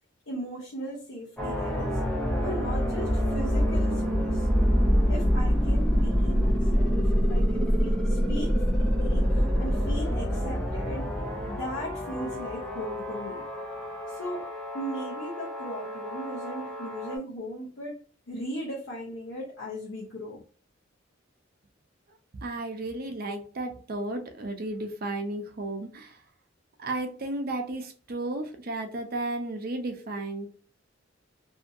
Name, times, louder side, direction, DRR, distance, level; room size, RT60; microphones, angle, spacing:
voice 1, 0.3-2.0 2.4-4.5 5.1-11.1 11.5-13.5 14.1-14.5 14.7-20.4, equal, 75° left, 0.9 m, -38 dB
sound 1, 1.4-17.2, equal, 5° left, 0.7 m, -26 dB
voice 2, 22.4-26.2 26.8-30.5, right 2 dB, 50° right, 0.6 m, -33 dB
2.7 x 2.5 x 2.6 m
head